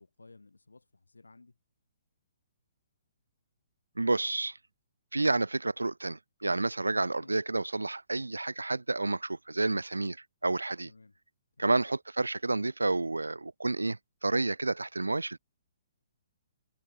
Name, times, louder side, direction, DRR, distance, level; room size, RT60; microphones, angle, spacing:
voice 1, 0.0-1.6 7.2-7.4 10.8-11.2 11.6-11.8, left 3 dB, 75° left, 4.5 m, -56 dB
voice 2, 4.0-4.6 5.1-10.2 10.4-10.9 11.6-14.0 14.2-15.4, right 2 dB, 80° right, 0.6 m, -30 dB
figure-of-eight pair, 125°, 0 cm